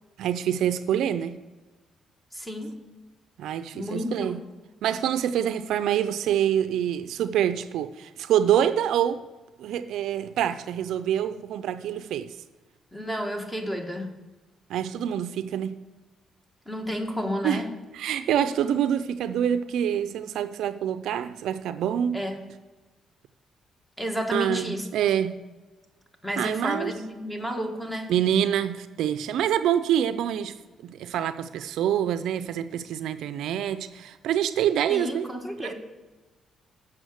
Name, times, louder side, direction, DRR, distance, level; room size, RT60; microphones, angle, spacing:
voice 1, 0.2-1.3 3.4-4.4 4.8-9.2 9.6-12.3 14.7-15.8 17.4-17.6 17.9-22.2 24.3-25.3 26.4-26.9 28.1-30.5 30.8-35.3 35.6-35.7, right 10 dB, 80° right, 12 dB, 0.4 m, -26 dB
voice 2, 2.3-2.8 3.7-4.4 12.9-14.1 16.7-17.7 22.1-22.4 24.0-24.8 26.2-28.1 34.9-35.7, equal, 5° left, 5 dB, 1.3 m, -31 dB
7.8 x 5.8 x 6.4 m, 1.2 s
cardioid pair, 90°, 0 cm